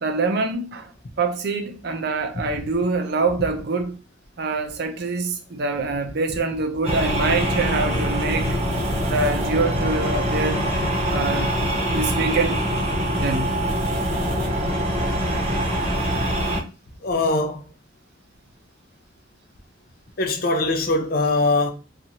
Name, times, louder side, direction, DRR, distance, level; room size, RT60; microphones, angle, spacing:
voice 1, 0.0-0.9 1.2-4.0 4.4-8.6 9.1-10.6 11.1-11.5 11.9-12.6 13.1-13.6, right 3 dB, 55° right, 0.5 m, -25 dB
sound 1, 6.8-16.6, equal, 35° right, 0.8 m, -24 dB
voice 2, 17.0-17.6 20.2-21.7, left 2 dB, 50° left, 0.5 m, -21 dB
2.7 x 2.4 x 2.8 m
head